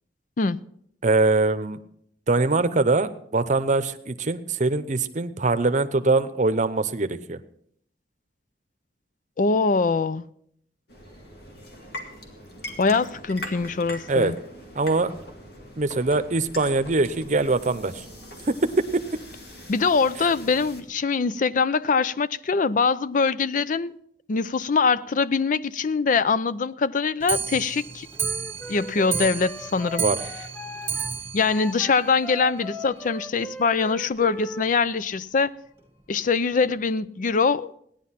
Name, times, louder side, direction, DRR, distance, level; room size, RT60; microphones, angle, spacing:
voice 1, 1.0-1.8 2.3-7.4 14.1-14.3 14.8-15.1 15.8-18.0 18.5-18.6 30.0-30.2, right 3 dB, 45° right, 0.8 m, -22 dB
voice 2, 9.4-10.3 12.8-14.4 19.7-24.0 24.3-28.1 28.7-30.1 31.3-35.5 36.1-37.7, left 4 dB, 50° left, 0.5 m, -23 dB
sound 1, 10.9-20.8, equal, 65° left, 2.5 m, -41 dB
Clock, 27.2-32.7 33.0-33.1 33.4-33.5 33.8-33.9 34.2-34.3 35.0-35.1 35.8-35.9 36.6-36.7, right 6 dB, 15° right, 1.2 m, -32 dB
Wind instrument woodwind instrument, 28.2-34.7, equal, 5° left, 0.6 m, -39 dB
16.5 x 10.5 x 5.8 m
head